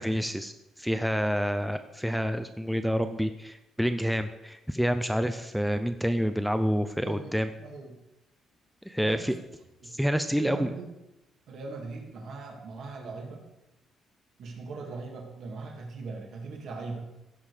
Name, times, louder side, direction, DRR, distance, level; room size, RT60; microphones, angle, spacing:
voice 1, 0.0-7.5 8.9-9.3 9.8-10.7, equal, ahead, 8 dB, 0.4 m, -28 dB
voice 2, 7.0-7.3 7.6-8.0 9.0-9.4 9.8-10.0 10.4-10.9 11.5-13.4 14.4-17.0, right 3 dB, 60° right, 1 dB, 2.3 m, -40 dB
15.5 x 5.3 x 4.9 m, 0.95 s
cardioid pair, 150°, 0 cm